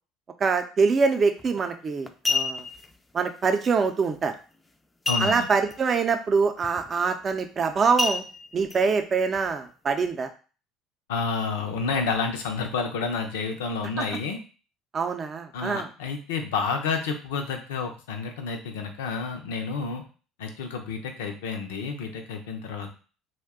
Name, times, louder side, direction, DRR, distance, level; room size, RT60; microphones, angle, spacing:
voice 1, 0.4-2.6 3.1-4.3 5.2-8.2 8.5-10.3 14.0-14.1 14.9-15.9, right 5 dB, 40° right, 7 dB, 0.5 m, -24 dB
sound 1, 1.4-1.6 2.1-2.8 5.0-5.7 6.1-6.2 6.6-6.9 8.0-8.8 9.3-9.4, left 3 dB, 15° left, 0.4 m, -28 dB
voice 2, 5.1-5.5 11.1-14.4 15.5-20.0 20.4-22.9, left 5 dB, 80° left, 4 dB, 0.5 m, -30 dB
2.5 x 2.2 x 3.6 m, 0.37 s
hypercardioid pair, 70°, 0 cm